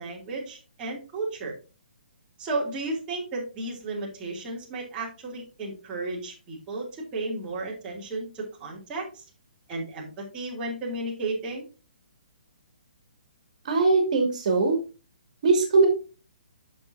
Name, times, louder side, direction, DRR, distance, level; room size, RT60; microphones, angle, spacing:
voice 1, 0.0-1.5 2.4-9.2 9.7-11.6, right 2 dB, 15° right, -5 dB, 2.8 m, -33 dB
voice 2, 13.6-14.8 15.4-15.9, right 3 dB, 50° right, 3 dB, 2.5 m, -21 dB
9.4 x 6.6 x 2.7 m, 0.32 s
hypercardioid pair, 160°, 5 cm